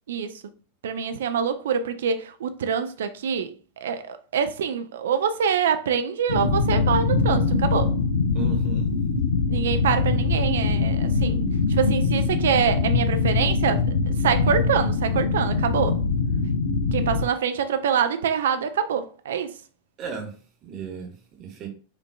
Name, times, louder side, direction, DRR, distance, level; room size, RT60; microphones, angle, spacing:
voice 1, 0.8-7.9 9.5-11.4 11.7-16.0 16.9-19.5, right 7 dB, 60° right, 0.4 m, -25 dB
sound 1, 6.3-17.2, left 4 dB, 70° left, 0.6 m, -23 dB
voice 2, 8.3-8.9 20.0-20.3 20.6-21.7, right 3 dB, 35° right, 1.1 m, -34 dB
5.1 x 2.6 x 2.3 m
figure-of-eight pair, 90°, 0 cm